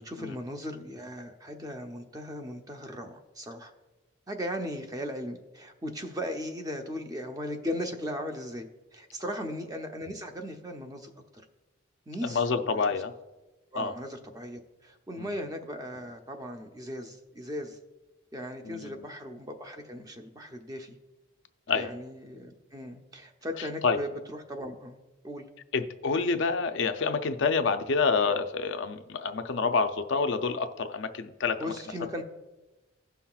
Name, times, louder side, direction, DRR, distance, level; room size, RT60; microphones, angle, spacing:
voice 1, 0.0-3.7 4.3-11.1 12.1-12.8 13.7-17.8 18.3-21.0 21.7-25.5 31.6-32.2, equal, 15° right, 4 dB, 0.6 m, -37 dB
voice 2, 12.2-13.1 13.7-13.9 15.2-15.3 18.7-18.9 21.7-21.9 23.6-24.0 25.7-31.7, left 4 dB, 65° left, 8 dB, 0.5 m, -28 dB
17.0 x 5.7 x 2.3 m, 1.1 s
head